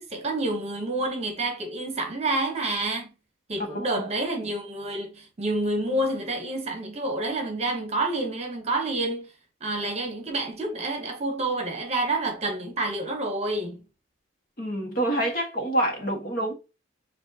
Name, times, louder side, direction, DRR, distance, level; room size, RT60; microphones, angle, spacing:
voice 1, 0.0-3.1 3.5-9.3 9.6-13.8, right 2 dB, 35° right, 1.0 m, -28 dB
voice 2, 14.6-16.5, right 1 dB, 45° left, 1.4 m, -27 dB
7.1 x 2.6 x 2.8 m
head